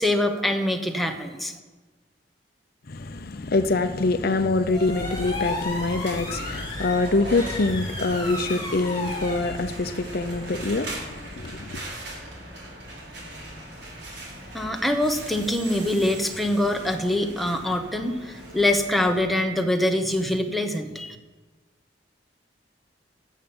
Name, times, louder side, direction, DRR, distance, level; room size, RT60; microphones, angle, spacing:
voice 1, 0.0-1.5 14.5-21.2, left 1 dB, ahead, 1.2 m, -24 dB
voice 2, 2.9-11.8, left 3 dB, 60° left, 0.7 m, -25 dB
sound 1, 3.0-11.6, left 2 dB, 25° left, 3.2 m, -36 dB
sound 2, 4.8-19.3, equal, 70° right, 5.0 m, -38 dB
12.5 x 7.4 x 8.7 m
head